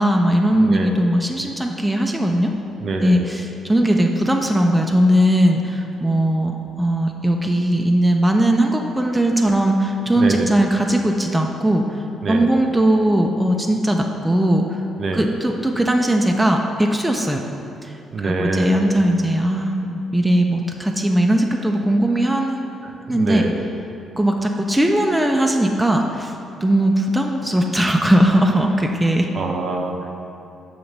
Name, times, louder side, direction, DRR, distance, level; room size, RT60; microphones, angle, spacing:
voice 1, 0.0-2.5 3.0-14.8 15.1-17.4 17.8-22.7 23.0-23.4 24.2-26.3 26.6-29.3, right 1 dB, 5° right, 2 dB, 0.4 m, -19 dB
voice 2, 0.6-1.0 2.8-3.2 10.1-10.5 12.2-12.5 15.0-15.2 18.1-18.8 22.8-23.5 29.3-30.1, right 2 dB, 50° right, 2 dB, 0.6 m, -25 dB
6.6 x 2.9 x 5.1 m, 2.8 s
cardioid pair, 90°, 0 cm